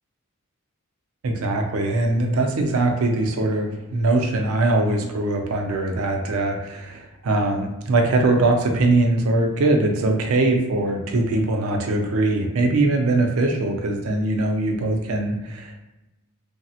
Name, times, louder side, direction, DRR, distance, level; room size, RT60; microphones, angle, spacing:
voice 1, 1.2-15.9, right 2 dB, 75° right, 2 dB, 0.5 m, -21 dB
3.2 x 2.0 x 2.7 m, 0.98 s
head